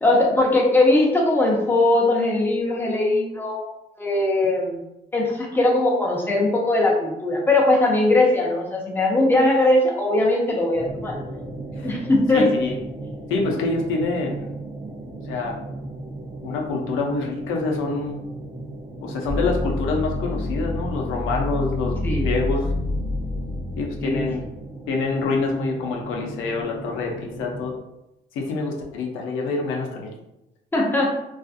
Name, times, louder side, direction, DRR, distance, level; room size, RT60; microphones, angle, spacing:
voice 1, 0.0-3.7 4.0-4.8 5.1-11.2 11.8-12.5 22.0-22.3 24.0-24.3 30.7-31.1, left 2 dB, 10° left, -2 dB, 0.7 m, -20 dB
sound 1, 10.7-27.8, right 2 dB, 30° right, 0.6 m, -37 dB
voice 2, 12.3-12.8 13.3-14.5 15.3-15.5 16.4-18.2 19.0-22.0 22.2-22.7 23.8-24.4 24.9-27.7 28.3-30.1, left 3 dB, 90° left, 0 dB, 0.5 m, -26 dB
sound 2, 19.3-25.0, left 1 dB, 60° left, 0.8 m, -28 dB
2.5 x 2.4 x 2.4 m, 0.89 s
cardioid pair, 90°, 20 cm